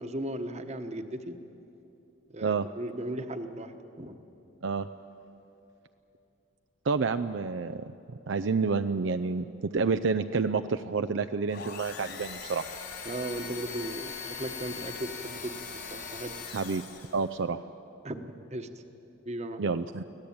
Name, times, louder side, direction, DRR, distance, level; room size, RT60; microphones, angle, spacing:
voice 1, 0.0-1.4 2.3-4.2 13.0-15.6 15.9-16.3 18.0-18.7 19.2-19.6, right 1 dB, 35° right, 8 dB, 1.2 m, -36 dB
voice 2, 6.9-7.8 8.3-12.6 16.5-16.8 17.1-17.6 19.6-20.0, right 4 dB, 65° right, 9 dB, 0.5 m, -29 dB
sound 1, 11.5-17.3, left 5 dB, 60° left, 3.6 m, -41 dB
24.5 x 17.0 x 8.7 m, 3.0 s
head